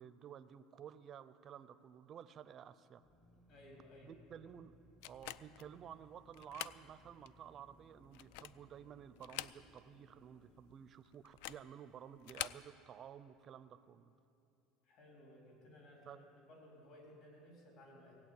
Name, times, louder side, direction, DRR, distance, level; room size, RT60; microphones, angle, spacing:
voice 1, 0.0-3.0 4.0-4.8 5.1-14.1 16.1-16.2, right 9 dB, 30° right, 13 dB, 0.5 m, -53 dB
Drill, 3.0-11.6, left 1 dB, 15° left, 0.7 m, -67 dB
voice 2, 3.5-4.1 14.8-18.2, left 1 dB, 50° left, -2 dB, 3.9 m, -59 dB
sound 1, 5.0-5.7 6.3-6.8 7.3-7.4 8.0-8.7 9.2-9.9 10.2-10.3 11.2-11.7 12.2-12.7, left 14 dB, 70° left, 0.3 m, -46 dB
16.5 x 8.5 x 8.2 m, 2.6 s
cardioid pair, 160°, 0 cm